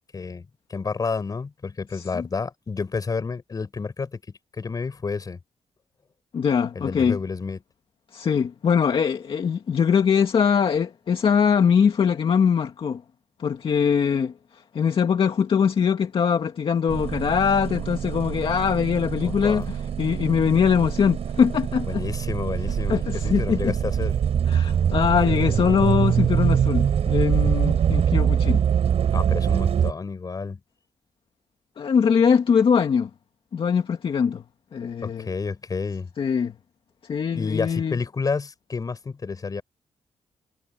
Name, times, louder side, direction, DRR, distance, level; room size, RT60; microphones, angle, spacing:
voice 1, 0.0-4.2 4.5-5.4 6.7-7.6 19.2-19.7 21.9-24.1 29.1-30.6 35.0-36.1 37.3-39.6, left 4 dB, 30° left, 4.9 m, -30 dB
voice 2, 1.9-2.2 6.3-7.2 8.1-13.0 13.4-14.3 14.7-22.0 22.9-23.7 24.5-28.6 31.8-33.1 33.5-34.4 34.7-35.3 36.2-36.5 37.1-38.0, left 7 dB, 50° left, 2.1 m, -22 dB
sound 1, 16.9-29.9, right 8 dB, 65° right, 4.3 m, -24 dB
cardioid pair, 130°, 12 cm